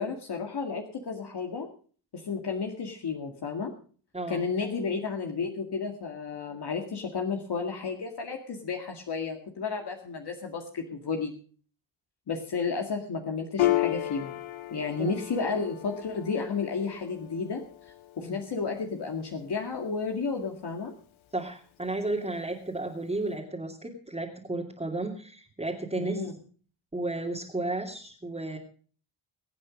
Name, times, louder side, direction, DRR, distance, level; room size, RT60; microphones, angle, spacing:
voice 1, 0.0-1.7 2.1-3.7 4.3-11.3 12.3-14.4 14.7-17.6 18.2-20.9 25.9-26.3, left 5 dB, 55° left, 2 dB, 2.1 m, -32 dB
Piano, 13.6-20.5, left 15 dB, 80° left, 1.1 m, -34 dB
voice 2, 21.3-26.2 26.9-28.6, right 2 dB, 15° right, -4 dB, 2.7 m, -33 dB
23.0 x 9.0 x 5.1 m, 0.43 s
wide cardioid pair, 125°, 47 cm